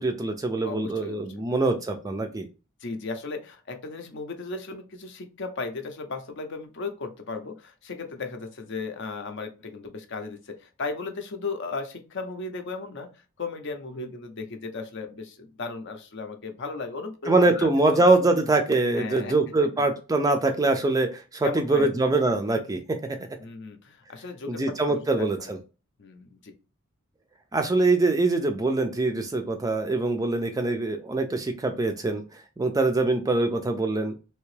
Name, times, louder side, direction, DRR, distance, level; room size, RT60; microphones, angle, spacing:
voice 1, 0.0-2.5 17.3-23.2 24.5-25.6 27.5-32.2 32.6-34.1, right 2 dB, 15° right, 6 dB, 0.3 m, -23 dB
voice 2, 0.6-1.8 2.8-18.1 18.9-19.4 21.4-21.9 23.4-25.5 26.0-26.5, left 4 dB, 55° left, 7 dB, 0.6 m, -36 dB
3.4 x 2.8 x 3.2 m, 0.32 s
head